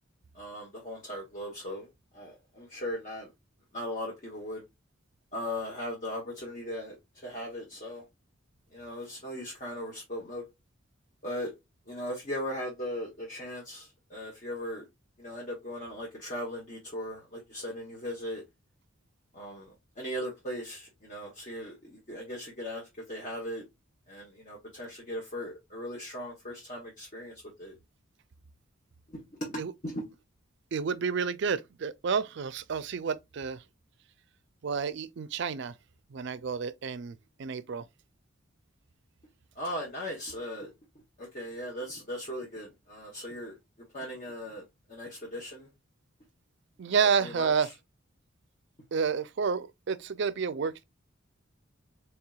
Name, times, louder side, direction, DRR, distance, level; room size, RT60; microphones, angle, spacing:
voice 1, 0.3-1.9 2.1-3.3 3.7-4.6 5.3-6.9 7.2-8.0 8.7-10.4 11.2-11.5 11.9-14.8 15.2-18.4 19.3-23.6 24.1-27.3 27.6-27.8 29.1-30.0 39.6-40.7 41.2-43.5 43.9-44.6 44.9-45.7 47.2-47.5, equal, 35° left, 1.0 m, -38 dB
voice 2, 30.7-33.6 34.6-35.7 36.1-37.9 46.8-47.7 48.9-50.8, right 6 dB, 60° right, 0.4 m, -30 dB
4.5 x 3.3 x 2.3 m
head